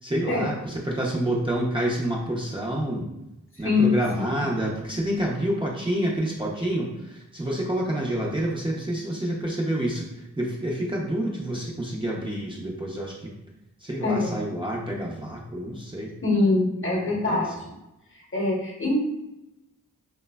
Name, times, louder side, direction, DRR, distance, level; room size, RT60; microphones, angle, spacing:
voice 1, 0.0-3.1 3.6-13.3 13.8-16.1 17.1-17.4, right 1 dB, 15° right, -4 dB, 0.5 m, -28 dB
voice 2, 14.0-14.3 16.2-17.5 18.1-19.0, left 3 dB, 40° left, -2 dB, 0.9 m, -23 dB
3.1 x 2.1 x 2.2 m, 0.92 s
cardioid pair, 45°, 32 cm